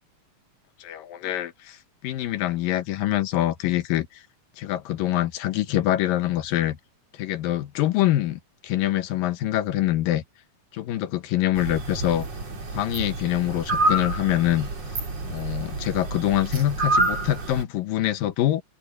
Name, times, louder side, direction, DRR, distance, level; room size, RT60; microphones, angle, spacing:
voice 1, 0.8-4.2 4.6-6.8 7.1-10.2 10.7-12.3 12.7-14.7 15.2-18.6, left 13 dB, 80° left, 2.8 m, -25 dB
sound 1, 11.6-17.6, right 2 dB, 45° right, 5.2 m, -28 dB
open air
omnidirectional pair, 4.0 m